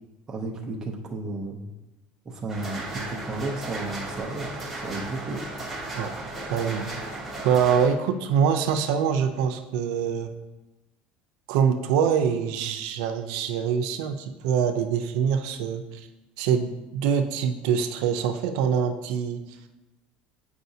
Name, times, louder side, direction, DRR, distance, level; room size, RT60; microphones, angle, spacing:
voice 1, 0.3-1.7 2.2-5.4, right 2 dB, 15° right, 0 dB, 0.6 m, -33 dB
sound 1, 2.5-7.9, right 2 dB, ahead, 1.0 m, -35 dB
voice 2, 6.5-6.9 7.4-10.3 11.5-16.1 16.4-19.4, right 7 dB, 85° right, 5 dB, 0.5 m, -24 dB
7.8 x 4.8 x 2.7 m, 1.1 s
cardioid pair, 180°, 3 cm